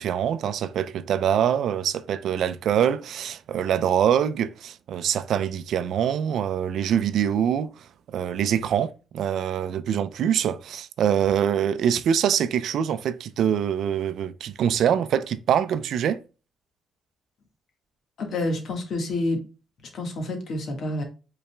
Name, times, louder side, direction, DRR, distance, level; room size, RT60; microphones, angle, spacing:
voice 1, 0.0-16.2, right 9 dB, 70° right, 0.4 m, -24 dB
voice 2, 18.2-19.4 19.9-21.0, left 2 dB, 60° left, 1.5 m, -28 dB
5.5 x 3.9 x 2.2 m
cardioid pair, 90°, 0 cm